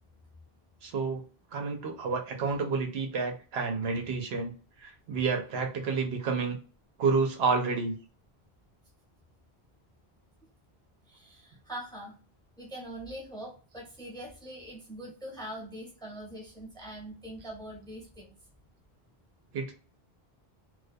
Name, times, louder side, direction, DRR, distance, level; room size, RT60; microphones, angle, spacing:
voice 1, 0.8-1.2 1.5-4.5 4.8-6.6 7.0-8.0 19.5-19.7, right 4 dB, 80° right, 3 dB, 0.9 m, -29 dB
voice 2, 11.1-12.2 12.6-18.4, right 1 dB, 5° left, -1 dB, 0.6 m, -43 dB
2.2 x 2.2 x 2.5 m, 0.38 s
omnidirectional pair, 1.1 m